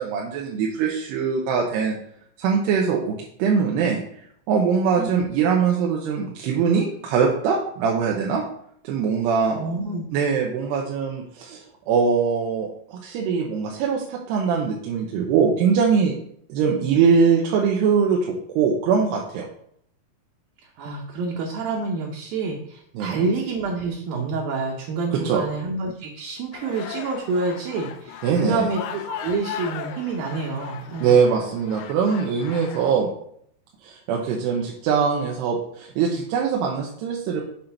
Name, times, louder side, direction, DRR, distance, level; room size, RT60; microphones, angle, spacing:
voice 1, 0.0-2.0 2.4-4.0 4.5-8.4 8.8-9.6 10.1-16.1 16.5-19.5 23.0-23.3 25.1-25.4 28.2-28.7 31.0-33.1 33.8-37.4, right 6 dB, 90° right, -1 dB, 2.9 m, -22 dB
voice 2, 9.5-10.0 20.8-31.2, right 3 dB, 70° right, -1 dB, 2.5 m, -28 dB
sound 1, 26.5-32.9, left 9 dB, 90° left, 2.0 m, -37 dB
7.3 x 3.8 x 5.8 m, 0.67 s
omnidirectional pair, 4.7 m